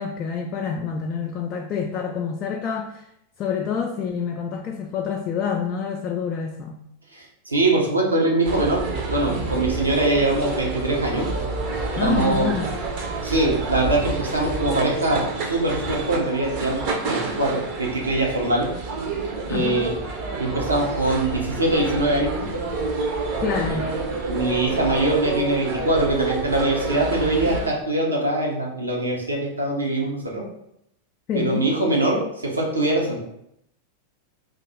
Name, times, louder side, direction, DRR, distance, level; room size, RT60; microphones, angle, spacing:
voice 1, 0.0-3.1 3.4-6.8 11.9-12.7 19.5-19.9 23.4-23.9 31.3-31.7, left 6 dB, 35° left, 1 dB, 0.3 m, -27 dB
voice 2, 7.1-11.3 12.0-12.5 13.2-18.7 19.5-19.9 20.4-22.6 23.7-23.8 24.3-30.4 31.3-33.2, right 2 dB, 80° right, -2 dB, 0.8 m, -23 dB
sound 1, 8.4-27.7, right 3 dB, 45° right, 0.6 m, -28 dB
2.6 x 2.4 x 4.1 m, 0.78 s
figure-of-eight pair, 90°, 0 cm